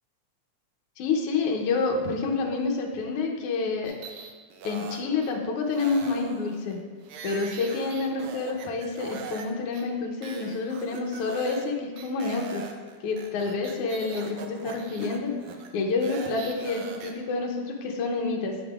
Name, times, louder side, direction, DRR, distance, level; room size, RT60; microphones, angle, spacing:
voice 1, 1.0-4.0 4.6-6.8 7.2-12.6 13.0-15.3 15.7-18.5, left 4 dB, 75° left, 0 dB, 1.3 m, -28 dB
sound 1, 3.8-5.3 5.7-9.5 9.7-9.8 10.2-11.7 12.0-17.1, right 5 dB, 80° right, 1.8 m, -41 dB
8.7 x 7.0 x 2.3 m, 1.4 s
omnidirectional pair, 3.4 m